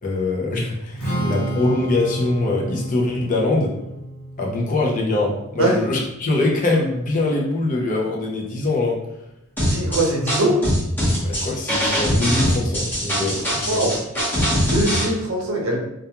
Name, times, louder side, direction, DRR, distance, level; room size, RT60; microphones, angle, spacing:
voice 1, 0.0-3.8 4.4-9.0 11.2-13.9, left 2 dB, 40° left, -2 dB, 0.5 m, -23 dB
Strum, 1.0-7.2, right 1 dB, 80° left, 1.0 m, -31 dB
sound 1, 9.6-15.0, equal, 10° left, 0.8 m, -22 dB
voice 2, 9.6-10.6 13.7-13.9 14.6-15.8, right 1 dB, 70° right, 0 dB, 0.6 m, -21 dB
2.3 x 2.3 x 2.8 m, 0.87 s
head